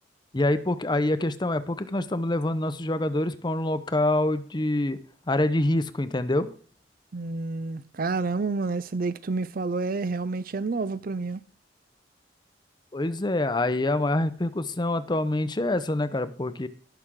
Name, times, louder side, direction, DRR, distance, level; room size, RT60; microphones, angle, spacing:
voice 1, 0.3-5.0 5.3-6.5 12.9-16.7, left 1 dB, 25° left, 0.7 m, -26 dB
voice 2, 7.1-11.4, right 3 dB, 50° right, 0.5 m, -29 dB
17.5 x 6.2 x 3.7 m
head